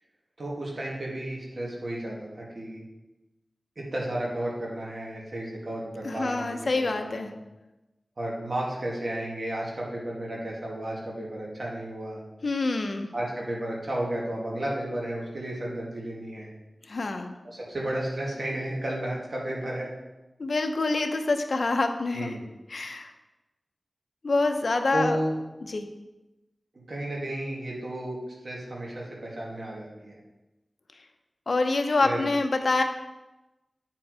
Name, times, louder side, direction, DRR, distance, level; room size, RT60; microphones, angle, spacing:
voice 1, 0.4-2.9 3.8-6.7 6.9-7.3 8.2-12.2 13.1-16.5 17.4-19.9 22.1-22.4 24.9-25.3 26.7-30.2 32.0-32.2, right 1 dB, 60° right, -4 dB, 2.2 m, -33 dB
voice 2, 6.0-7.3 12.4-13.1 16.9-17.3 20.4-22.4 22.7-23.1 24.2-25.2 25.7-25.9 31.5-32.8, left 3 dB, 70° left, 6 dB, 0.7 m, -26 dB
8.6 x 4.6 x 4.8 m, 1.0 s
wide cardioid pair, 60°, 0 cm